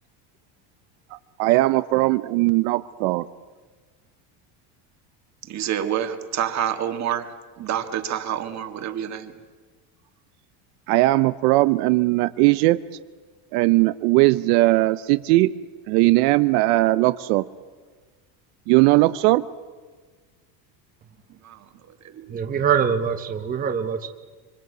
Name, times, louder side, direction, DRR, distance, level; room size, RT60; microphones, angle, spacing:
voice 1, 1.4-3.2 10.9-12.8 13.5-15.5 15.9-17.4 18.7-19.4, right 19 dB, 75° right, 13 dB, 0.8 m, -19 dB
voice 2, 5.5-9.3 21.4-21.7 22.0-22.3, right 10 dB, 35° right, 7 dB, 2.0 m, -28 dB
voice 3, 22.3-24.1, right 7 dB, 20° right, 6 dB, 0.9 m, -24 dB
25.5 x 24.5 x 8.1 m, 1.4 s
cardioid pair, 155°, 47 cm